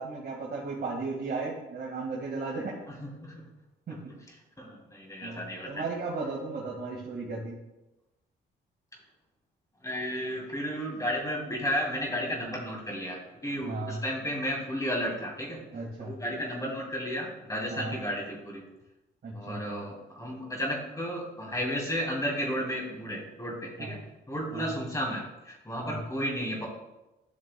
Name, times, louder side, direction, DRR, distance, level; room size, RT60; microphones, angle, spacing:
voice 1, 0.0-2.8 3.9-4.0 5.2-7.5 13.6-14.0 15.7-16.2 17.7-18.0 19.2-19.8 23.8-24.0 24.5-24.7 25.8-26.0, right 3 dB, 50° right, -3 dB, 1.8 m, -35 dB
voice 2, 3.0-3.4 4.6-5.8 9.8-15.6 16.0-18.6 19.3-24.0 24.3-26.7, equal, 15° left, -3 dB, 2.9 m, -33 dB
12.0 x 6.5 x 2.3 m, 0.98 s
cardioid pair, 90°, 20 cm